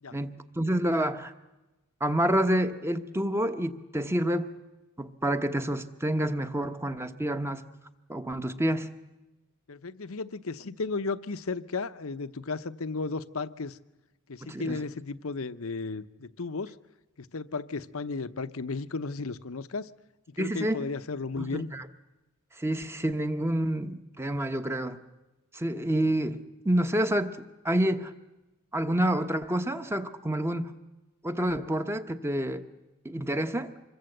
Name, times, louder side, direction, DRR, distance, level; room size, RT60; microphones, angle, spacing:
voice 1, 0.1-1.3 2.0-4.5 5.0-7.6 8.1-8.9 14.4-14.8 20.4-20.9 21.4-21.9 22.6-25.0 25.5-26.4 26.6-28.1 28.7-30.7 31.2-32.6 33.0-33.7, right 1 dB, 10° right, 1.0 m, -28 dB
voice 2, 9.7-13.8 14.3-16.8 17.2-19.9 20.3-21.7, left 4 dB, 70° left, 0.8 m, -34 dB
26.0 x 22.0 x 8.0 m
head